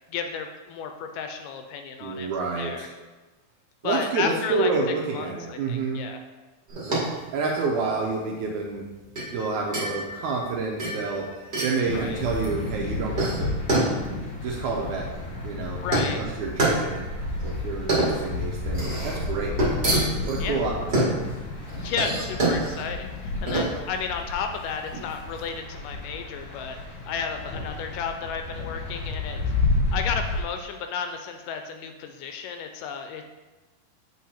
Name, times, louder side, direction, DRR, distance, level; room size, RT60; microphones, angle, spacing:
voice 1, 0.1-2.3 2.6-2.9 3.8-4.7 5.1-6.2 11.9-12.2 15.8-16.2 20.4-20.6 21.8-29.4 29.9-33.3, left 6 dB, 80° left, 5 dB, 2.0 m, -33 dB
voice 2, 2.0-2.9 3.8-6.1 7.3-8.9 9.3-11.4 11.6-13.5 14.4-15.1 15.4-17.0 17.4-19.6 20.3-21.3, right 4 dB, 75° right, -1 dB, 1.9 m, -29 dB
sound 1, 6.7-25.5, right 2 dB, 30° right, 1.4 m, -28 dB
sound 2, 11.8-30.4, left 3 dB, 55° left, 1.5 m, -31 dB
7.5 x 4.4 x 4.3 m, 1.2 s
omnidirectional pair, 4.0 m